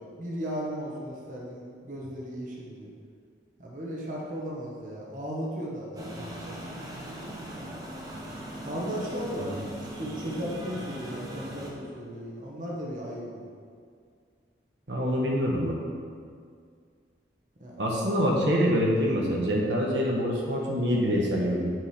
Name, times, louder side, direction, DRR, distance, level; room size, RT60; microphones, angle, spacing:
voice 1, 0.0-2.9 3.6-6.6 8.6-13.5 17.6-17.8, equal, 45° right, -3 dB, 1.4 m, -36 dB
sound 1, 6.0-11.7, right 1 dB, 20° right, 0.9 m, -39 dB
voice 2, 14.9-15.8 17.8-21.7, equal, 90° right, -2 dB, 1.4 m, -25 dB
9.3 x 5.2 x 5.0 m, 2.1 s
head